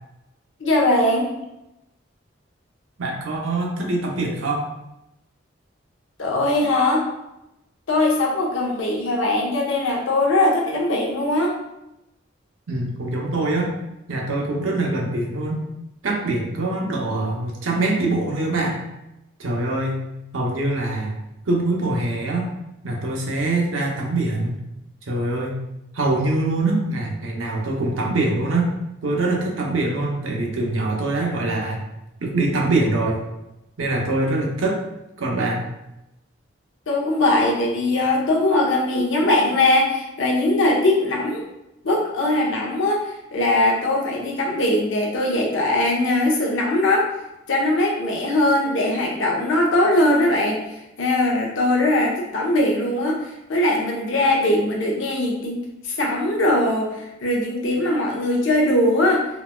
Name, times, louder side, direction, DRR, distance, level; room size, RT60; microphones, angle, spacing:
voice 1, 0.6-1.3 6.2-7.0 7.9-11.6 36.9-41.4 41.8-47.1 47.5-55.6 55.8-59.3, left 1 dB, 75° left, -1 dB, 0.7 m, -20 dB
voice 2, 3.0-4.7 12.7-13.7 14.1-15.6 16.0-18.8 19.4-20.0 20.3-21.1 21.5-22.5 22.8-24.6 25.1-25.6 25.9-28.7 29.0-31.8 32.2-33.2 33.8-34.8 35.2-35.6, right 2 dB, 85° right, 0 dB, 0.7 m, -23 dB
3.9 x 2.3 x 2.2 m, 0.90 s
head